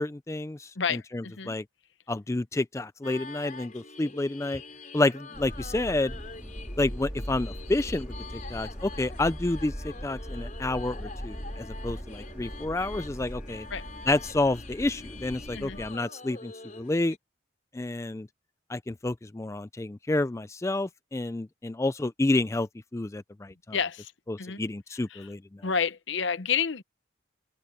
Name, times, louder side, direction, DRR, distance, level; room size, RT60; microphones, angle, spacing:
voice 1, 0.0-1.6 2.1-4.6 4.9-6.1 6.8-9.7 10.0-13.7 14.1-17.2 17.7-18.3 18.7-23.5 24.3-25.4, left 2 dB, 15° left, 0.4 m, -29 dB
voice 2, 0.8-1.6 13.7-13.9 15.5-15.8 23.7-24.1 24.4-24.6 24.9-25.3 25.6-26.8, left 6 dB, 75° left, 0.8 m, -30 dB
sound 1, 3.0-17.2, left 4 dB, 40° left, 4.7 m, -46 dB
sound 2, 5.3-16.0, equal, 5° right, 3.6 m, -40 dB
head